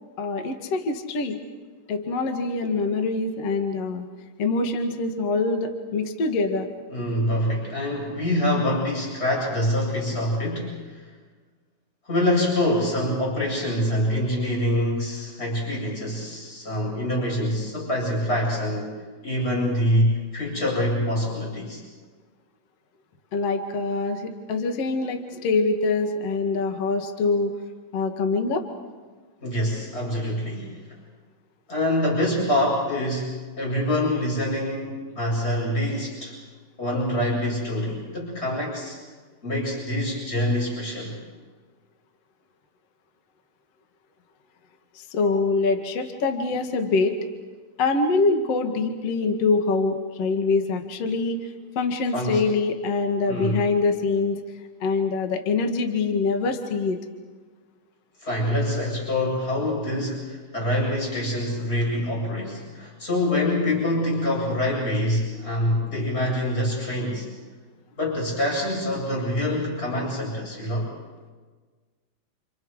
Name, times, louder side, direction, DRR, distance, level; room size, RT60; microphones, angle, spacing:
voice 1, 0.2-1.4 1.9-4.1 4.4-6.7 23.3-27.5 27.9-28.6 45.0-47.2 47.8-51.4 51.8-54.4 54.8-57.0, left 3 dB, 50° left, 4 dB, 1.9 m, -24 dB
voice 2, 6.9-11.1 12.0-19.0 19.2-21.8 29.4-31.0 31.7-36.4 36.8-39.0 39.4-41.2 52.1-52.4 53.3-53.7 58.2-67.3 68.0-70.9, left 1 dB, 10° left, -3 dB, 7.7 m, -25 dB
29.5 x 29.5 x 4.9 m, 1.4 s
omnidirectional pair, 5.6 m